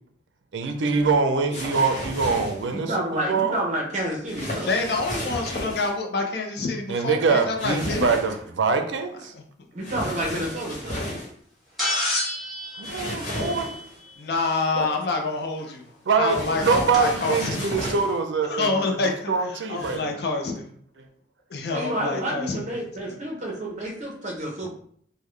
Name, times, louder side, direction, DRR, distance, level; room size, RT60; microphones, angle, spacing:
voice 1, 0.5-3.5 6.9-9.3 12.8-13.7 14.7-14.9 16.1-20.1 24.6-24.7, right 4 dB, 80° right, 0.5 m, -24 dB
sound 1, 1.5-2.7 4.3-5.9 7.6-8.4 9.8-11.3 12.8-13.9 16.3-18.2 19.8-20.0, left 1 dB, 40° left, 1.1 m, -33 dB
voice 2, 2.7-4.7 9.7-11.0 21.7-24.7, right 1 dB, 40° right, 0.9 m, -29 dB
voice 3, 4.7-8.1 14.2-15.8 16.2-17.6 18.5-20.7 21.5-22.7, left 3 dB, 60° left, 0.5 m, -27 dB
sound 2, 11.8-14.1 15.7-15.8 16.9-17.0, left 1 dB, ahead, 1.1 m, -29 dB
3.6 x 2.2 x 3.2 m
head